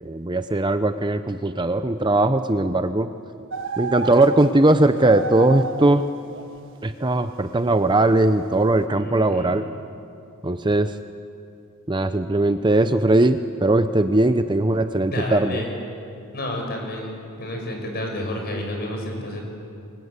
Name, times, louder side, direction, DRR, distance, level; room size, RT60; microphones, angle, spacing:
voice 1, 0.0-3.1 3.8-6.0 6.8-9.6 10.4-11.0 11.9-15.6, right 2 dB, 20° right, 9 dB, 0.7 m, -19 dB
sound 1, 3.5-4.7 5.0-5.9 6.3-6.6, right 4 dB, 60° right, 1.5 m, -30 dB
voice 2, 8.9-9.6 15.1-15.7 16.3-19.4, left 1 dB, 45° left, 2 dB, 6.3 m, -30 dB
29.0 x 23.5 x 8.2 m, 2.6 s
head